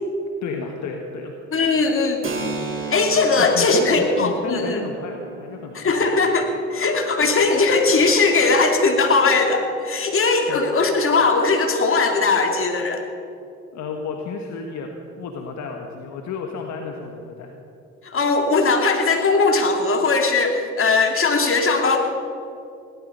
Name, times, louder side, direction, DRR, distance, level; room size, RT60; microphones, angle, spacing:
voice 1, 0.4-1.3 3.4-5.7 10.5-10.6 13.7-14.9 15.2-17.5, left 5 dB, 70° left, 2 dB, 1.5 m, -32 dB
voice 2, 1.5-2.2 2.9-4.8 5.7-13.0 18.0-22.0, left 3 dB, 45° left, 2 dB, 2.9 m, -19 dB
Keyboard (musical), 2.2-9.6, right 3 dB, 45° right, 2.5 m, -36 dB
18.0 x 12.0 x 5.5 m, 2.6 s
supercardioid pair, 60°, 30 cm